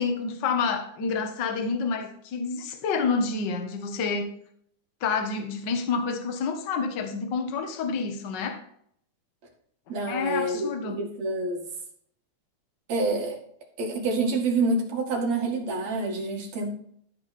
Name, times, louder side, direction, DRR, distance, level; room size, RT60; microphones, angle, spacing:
voice 1, 0.0-4.3 5.0-8.6 10.1-11.0, left 5 dB, 50° left, 5 dB, 1.5 m, -28 dB
voice 2, 9.9-11.7 12.9-13.4 13.8-16.7, right 3 dB, 60° right, 1 dB, 3.2 m, -27 dB
13.0 x 5.8 x 4.3 m, 0.65 s
omnidirectional pair, 3.6 m